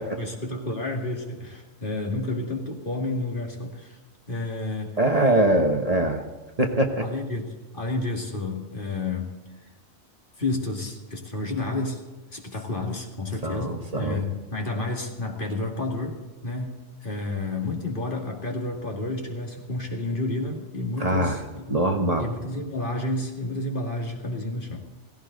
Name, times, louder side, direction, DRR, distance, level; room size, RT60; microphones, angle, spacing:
voice 1, 0.0-4.0 4.3-5.0 7.0-9.4 10.4-12.0 12.3-16.7 17.0-21.8 22.2-24.8, left 2 dB, 45° left, 1 dB, 2.4 m, -30 dB
voice 2, 5.0-6.2 6.6-7.1 13.4-14.2 21.0-21.4 21.7-22.3, right 1 dB, 35° right, 3 dB, 1.3 m, -23 dB
17.0 x 16.5 x 3.9 m, 1.2 s
omnidirectional pair, 1.2 m